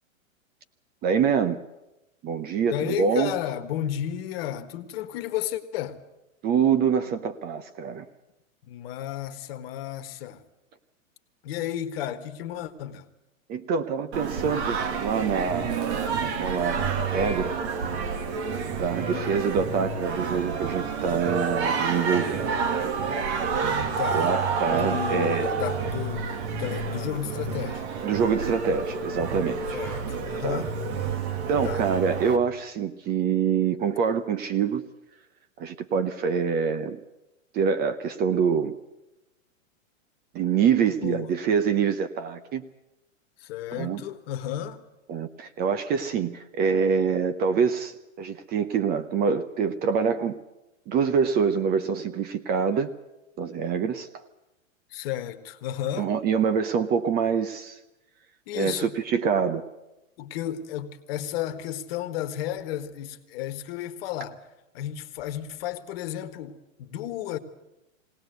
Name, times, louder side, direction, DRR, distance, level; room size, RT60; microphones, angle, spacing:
voice 1, 1.0-1.6 2.2-3.3 6.4-8.1 13.5-17.6 18.7-22.5 23.6-25.5 28.0-29.8 30.4-30.6 31.5-34.8 35.6-37.0 37.5-38.7 40.3-42.6 43.8-44.0 45.1-50.4 50.9-52.9 53.4-54.1 56.0-57.8 58.5-59.6, right 6 dB, 25° right, 0.8 m, -25 dB
voice 2, 2.7-6.0 8.7-10.5 11.4-13.1 19.1-19.4 24.0-24.3 24.7-27.8 29.7-30.7 31.6-31.9 41.0-41.4 43.4-44.9 54.9-56.1 58.5-58.9 60.2-64.4 64.7-67.4, left 11 dB, 45° left, 1.6 m, -33 dB
Singing, 14.1-32.4, right 5 dB, 55° right, 2.4 m, -29 dB
20.5 x 18.5 x 8.0 m
hypercardioid pair, 135°, 40 cm